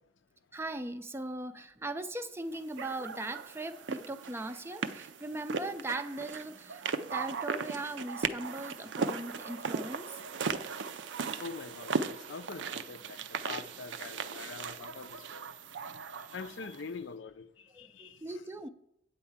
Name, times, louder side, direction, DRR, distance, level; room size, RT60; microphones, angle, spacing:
voice 1, 0.5-10.2 17.7-18.7, right 2 dB, 15° right, 0.4 m, -39 dB
sound 1, 2.8-16.8, right 5 dB, 70° right, 0.5 m, -37 dB
voice 2, 11.4-15.5 16.2-18.4, left 5 dB, 75° left, 0.5 m, -44 dB
8.7 x 4.5 x 7.2 m
head